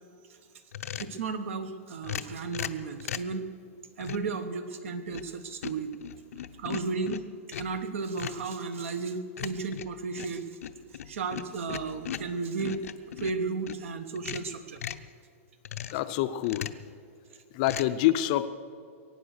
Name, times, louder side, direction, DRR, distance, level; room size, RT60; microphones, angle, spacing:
sound 1, 0.7-1.2 2.0-3.4 4.0-4.3 4.9-5.4 5.6-7.8 8.2-8.5 9.4-13.8 14.2-15.1 15.7-16.1 16.4-16.9 17.6-17.9, left 10 dB, 85° left, 0.7 m, -38 dB
voice 1, 1.0-3.4 4.0-5.9 6.6-7.2 7.5-10.5 11.1-12.8 13.2-14.8, right 4 dB, 65° right, 10 dB, 1.1 m, -34 dB
voice 2, 15.9-16.7 17.5-18.5, left 14 dB, 30° left, 11 dB, 0.5 m, -26 dB
22.0 x 9.2 x 6.6 m, 2.2 s
supercardioid pair, 170°, 8 cm